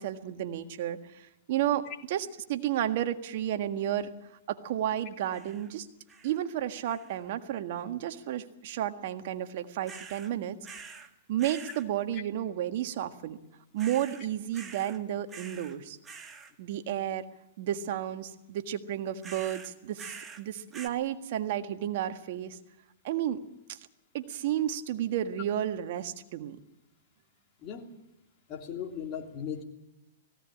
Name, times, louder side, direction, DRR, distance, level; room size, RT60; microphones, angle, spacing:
voice 1, 0.0-4.1 4.5-5.9 6.2-10.6 11.3-13.4 13.7-16.0 16.6-17.2 17.6-22.6 23.0-23.4 23.7-23.8 24.1-26.6, right 11 dB, 55° right, 8 dB, 1.6 m, -32 dB
sound 1, 5.3-5.7 6.1-6.5 6.9-7.3 9.8-10.3 10.6-11.1 11.4-11.8 13.8-14.2 14.5-15.0 15.3-15.8 16.0-16.5 19.2-20.4 20.7-20.9, right 5 dB, 15° right, 1.6 m, -46 dB
voice 2, 28.5-29.6, left 8 dB, 35° left, 1 dB, 3.0 m, -37 dB
18.0 x 16.5 x 9.9 m, 0.89 s
hypercardioid pair, 130°, 0 cm